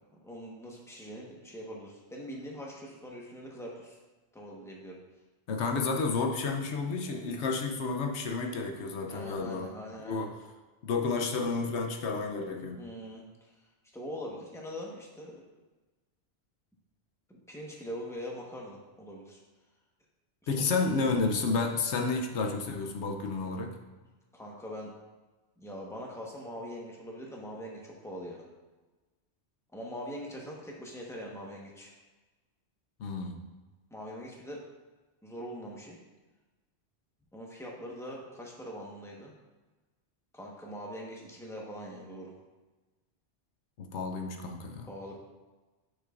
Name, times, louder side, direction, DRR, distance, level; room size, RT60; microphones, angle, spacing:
voice 1, 0.2-4.0 4.3-5.0 9.1-10.3 12.8-13.5 13.9-15.4 17.3-19.4 20.6-20.7 24.3-24.9 25.6-28.4 29.7-31.9 33.9-34.6 35.2-36.0 37.3-39.3 40.3-42.3 44.9-45.2, equal, 5° left, -3 dB, 1.1 m, -42 dB
voice 2, 5.5-9.7 10.0-10.3 10.8-12.8 20.5-23.7 33.0-33.4 43.8-44.9, left 4 dB, 80° left, 4 dB, 1.0 m, -31 dB
8.9 x 6.4 x 2.5 m, 1.2 s
omnidirectional pair, 1.1 m